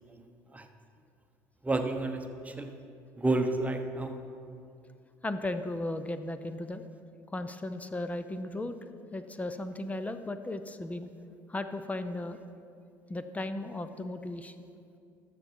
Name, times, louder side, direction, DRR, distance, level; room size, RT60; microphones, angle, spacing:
voice 1, 1.6-2.7 3.2-4.1, right 2 dB, 15° right, 5 dB, 1.0 m, -30 dB
voice 2, 5.2-6.8 7.3-8.8 9.1-11.1 11.5-12.4 13.1-14.5, left 2 dB, 15° left, 10 dB, 0.6 m, -36 dB
12.5 x 6.7 x 4.6 m, 2.5 s
hypercardioid pair, 70°, 9 cm